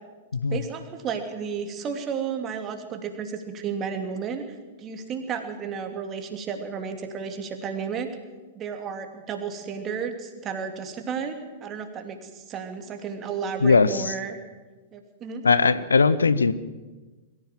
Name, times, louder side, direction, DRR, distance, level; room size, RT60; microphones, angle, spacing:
voice 1, 0.5-8.1 8.5-14.4 14.9-15.4, right 6 dB, 25° right, 5 dB, 2.8 m, -33 dB
voice 2, 13.6-14.1 15.4-16.5, left 4 dB, 75° left, 16 dB, 0.8 m, -19 dB
23.0 x 15.0 x 7.6 m, 1.3 s
figure-of-eight pair, 100°, 0 cm